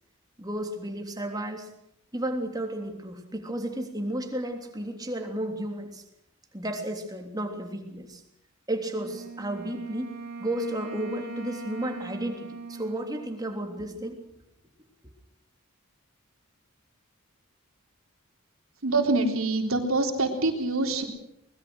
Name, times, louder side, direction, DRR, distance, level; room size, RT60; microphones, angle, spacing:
voice 1, 0.4-1.7 2.1-6.0 6.5-8.2 8.7-10.1 10.4-14.2, right 1 dB, 20° right, 3 dB, 3.3 m, -33 dB
Wind instrument woodwind instrument, 8.9-14.3, right 3 dB, 55° right, 2.9 m, -40 dB
voice 2, 18.8-21.0, right 2 dB, 80° right, 3 dB, 3.8 m, -25 dB
24.0 x 21.0 x 6.4 m, 0.76 s
head